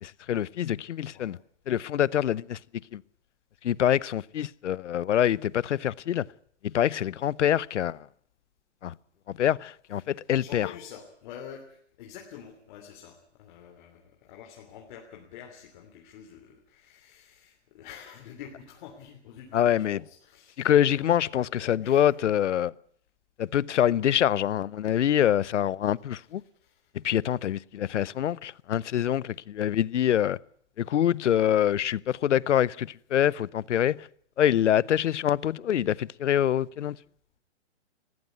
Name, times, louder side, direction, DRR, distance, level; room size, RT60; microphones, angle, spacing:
voice 1, 0.0-1.4 1.7-2.6 2.9-3.0 3.6-6.2 6.6-8.0 8.8-8.9 9.4-10.7 19.5-20.0 20.6-22.7 23.4-26.4 27.0-30.4 30.8-34.1 34.4-37.0, left 10 dB, 85° left, 0.8 m, -25 dB
voice 2, 10.4-22.1 26.6-26.9, left 8 dB, 40° left, 3.2 m, -47 dB
20.5 x 15.0 x 9.3 m
hypercardioid pair, 150°, 35 cm